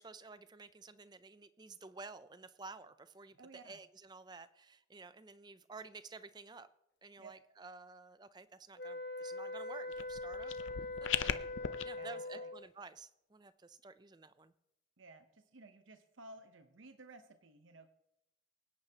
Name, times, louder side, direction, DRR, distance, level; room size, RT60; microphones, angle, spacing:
voice 1, 0.0-6.7 7.0-11.1 11.8-14.5, right 4 dB, 20° right, 13 dB, 0.4 m, -52 dB
voice 2, 3.3-3.8 7.2-7.3 11.2-11.4 11.9-12.5 15.0-17.9, right 2 dB, 85° right, 8 dB, 0.9 m, -56 dB
sound 1, 8.8-12.7, left 2 dB, 60° left, 1.0 m, -42 dB
sound 2, 9.9-11.8, left 8 dB, 80° left, 0.6 m, -38 dB
24.0 x 9.8 x 2.9 m, 0.83 s
head